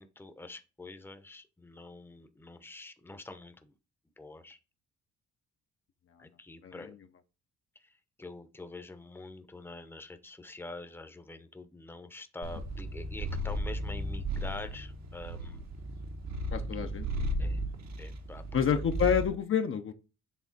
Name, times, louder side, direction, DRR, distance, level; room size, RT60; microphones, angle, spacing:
voice 1, 0.0-3.8 4.2-4.6 6.2-7.0 7.7-15.7 17.4-17.6 18.0-18.4 18.7-19.1, left 2 dB, 5° left, 0.8 m, -46 dB
Purr, 12.4-19.3, right 1 dB, 65° right, 1.2 m, -35 dB
voice 2, 16.5-17.1 18.5-19.9, left 7 dB, 45° left, 0.7 m, -28 dB
7.3 x 3.4 x 4.1 m
cardioid pair, 90°, 30 cm